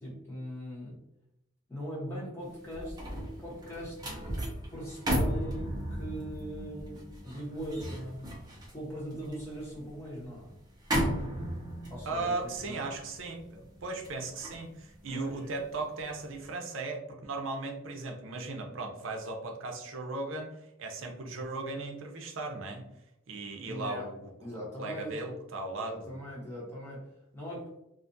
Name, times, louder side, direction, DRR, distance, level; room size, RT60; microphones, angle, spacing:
voice 1, 0.0-1.0 1.7-4.4 4.7-8.4 8.7-10.5 11.9-12.8 15.1-15.5 23.6-24.1 24.4-25.2 25.8-27.8, equal, 10° left, -6 dB, 0.9 m, -41 dB
sound 1, 2.5-15.8 16.2-16.5, equal, 20° right, 0.5 m, -36 dB
voice 2, 12.0-20.5 20.8-22.8 23.3-24.3 24.8-26.2, right 3 dB, 70° right, 2 dB, 0.5 m, -37 dB
2.5 x 2.3 x 2.6 m, 0.83 s
head